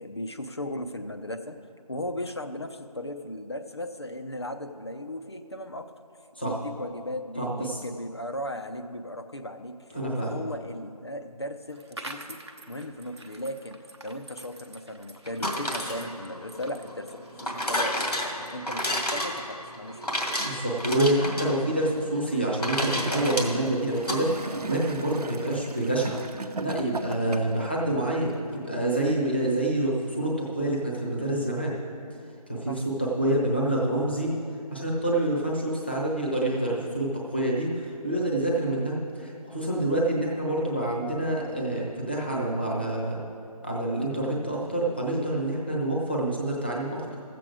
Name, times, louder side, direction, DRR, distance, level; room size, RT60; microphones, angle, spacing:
voice 1, 0.0-1.6 1.9-5.9 6.4-12.4 12.7-13.8 14.0-17.9 18.5-20.1 32.7-32.8, left 1 dB, 40° left, 7 dB, 0.6 m, -36 dB
voice 2, 7.4-7.8 9.9-10.4 20.4-24.3 24.7-26.2 26.6-31.8 32.5-34.3 34.7-43.2 43.6-47.1, right 1 dB, 15° left, -3 dB, 0.8 m, -27 dB
sound 1, 11.7-18.7, right 2 dB, 45° right, 0.8 m, -46 dB
sound 2, 15.3-24.2, equal, 85° left, 2.1 m, -31 dB
Gurgling / Toilet flush, 22.9-27.7 28.5-28.6, right 3 dB, 75° right, 0.7 m, -38 dB
14.0 x 7.7 x 4.9 m, 2.5 s
figure-of-eight pair, 175°, 20 cm